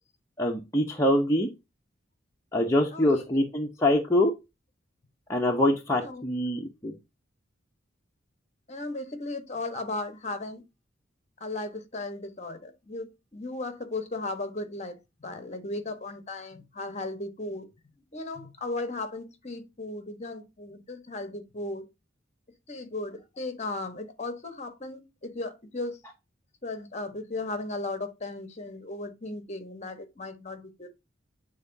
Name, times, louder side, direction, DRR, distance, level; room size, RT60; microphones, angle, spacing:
voice 1, 0.4-1.5 2.5-4.3 5.3-6.9, left 1 dB, 15° left, 0.8 m, -24 dB
voice 2, 2.9-3.3 6.0-6.3 8.7-10.6 11.4-17.7 18.1-21.9 22.7-26.0 26.6-30.9, left 2 dB, 35° left, 1.2 m, -36 dB
9.3 x 3.9 x 2.7 m
head